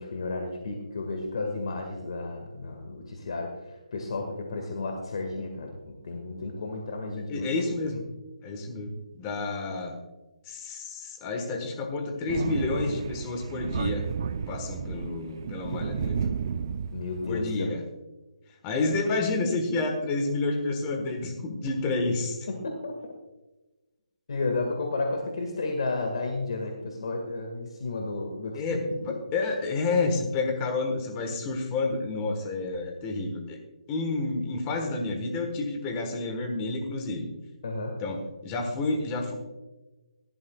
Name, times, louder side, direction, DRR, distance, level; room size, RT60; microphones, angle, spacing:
voice 1, 0.0-7.5 15.7-15.9 16.9-17.7 22.5-23.1 24.3-28.8 29.1-29.2 37.6-38.0, left 3 dB, 50° left, 3 dB, 1.8 m, -32 dB
voice 2, 7.3-8.0 8.4-9.9 10.4-14.1 14.5-16.3 17.3-17.8 18.6-22.4 28.5-33.6 33.9-37.3 38.0-39.3, left 3 dB, 15° left, 4 dB, 1.4 m, -29 dB
Thunder, 12.3-17.4, right 7 dB, 35° right, 0.4 m, -32 dB
17.5 x 12.5 x 2.3 m, 1.1 s
hypercardioid pair, 170°, 4 cm